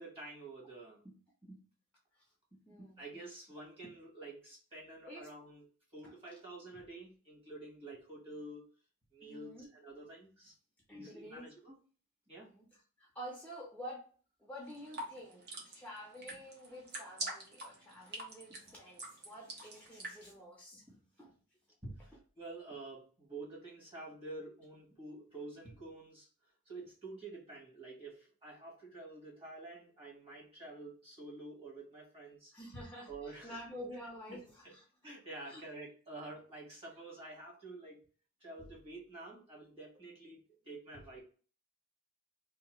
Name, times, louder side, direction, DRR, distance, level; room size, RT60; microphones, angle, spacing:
voice 1, 0.0-1.6 2.5-5.6 5.9-8.7 9.1-10.5 10.9-11.8 12.3-12.5 18.5-18.7 20.7-21.0 21.8-26.3 26.6-32.5 33.1-33.6 34.3-34.7 35.0-38.0 38.4-41.2, right 2 dB, 25° right, -3 dB, 1.4 m, -49 dB
voice 2, 2.7-3.0 5.0-5.3 6.0-6.4 9.2-9.7 10.9-11.5 12.4-14.1 14.4-20.8 21.2-21.3 32.5-34.8 35.5-35.6, equal, 5° left, -2 dB, 0.6 m, -49 dB
sound 1, 14.6-20.2, right 2 dB, 50° right, 0.9 m, -45 dB
2.9 x 2.7 x 3.0 m, 0.40 s
head